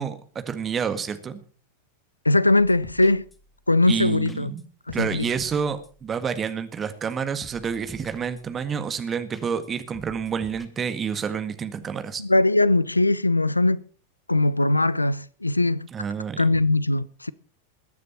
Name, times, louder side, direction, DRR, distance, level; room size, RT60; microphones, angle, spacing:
voice 1, 0.0-1.4 3.8-4.6 4.9-12.2 15.9-16.5, right 6 dB, 20° right, 1.7 m, -29 dB
voice 2, 2.2-3.3 3.7-4.5 4.9-5.2 12.2-13.8 14.3-15.9 16.4-17.3, left 2 dB, 85° left, 0.5 m, -20 dB
sound 1, 2.6-3.6 3.9-4.0 4.3-4.6 4.9-6.1 6.5-6.6 6.8-7.2 7.4-8.6 9.0-9.1 9.3-9.7 9.9-10.7, left 2 dB, 10° left, 1.9 m, -48 dB
21.5 x 9.6 x 4.3 m
figure-of-eight pair, 90°, 0 cm